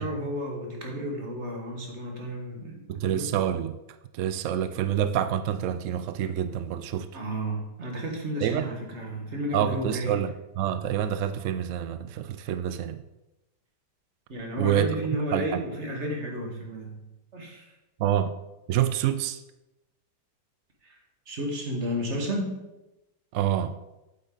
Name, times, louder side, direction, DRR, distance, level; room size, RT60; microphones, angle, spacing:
voice 1, 0.0-3.3 7.1-10.2 14.3-17.1 17.3-17.7 20.8-21.0 21.3-22.5, equal, 40° right, 1.9 m, -32 dB
voice 2, 2.9-3.8 4.1-7.1 8.4-8.7 9.5-13.0 14.6-14.9 15.3-15.6 18.0-18.3 18.7-19.4 23.3-23.8, right 10 dB, 90° right, 0.6 m, -27 dB
8.9 x 8.0 x 3.9 m
omnidirectional pair, 1.9 m